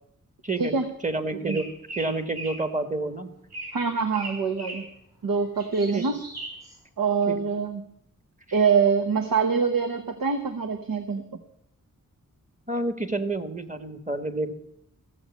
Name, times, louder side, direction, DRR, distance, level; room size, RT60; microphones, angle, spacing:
voice 1, 1.0-1.6 2.0-3.3 5.9-6.0 7.3-7.4 12.7-14.5, right 2 dB, 20° right, 9 dB, 1.6 m, -29 dB
sound 1, 1.4-2.7 3.5-3.8 4.1-4.9 5.4-6.8, right 2 dB, 50° right, 7.1 m, -39 dB
voice 2, 3.7-4.8 5.2-6.1 7.0-7.8 8.5-11.2, right 5 dB, 80° right, 8 dB, 1.0 m, -24 dB
15.5 x 7.8 x 8.4 m, 0.76 s
cardioid pair, 65°, 34 cm